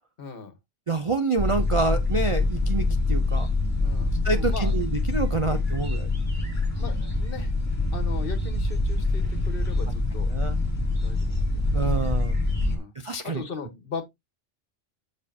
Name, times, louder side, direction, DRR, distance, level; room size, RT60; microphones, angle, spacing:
voice 1, 0.2-0.5 3.8-4.7 5.3-5.6 6.8-7.5 7.9-10.3 10.7-12.1 12.6-12.9 13.2-14.0, left 4 dB, 50° left, 1.5 m, -39 dB
voice 2, 0.9-3.5 4.2-6.1 10.3-10.6 11.7-12.4 13.0-13.4, right 3 dB, 40° right, 0.5 m, -27 dB
sound 1, 1.4-12.8, left 2 dB, 15° left, 2.5 m, -25 dB
7.4 x 6.3 x 2.8 m
omnidirectional pair, 1.2 m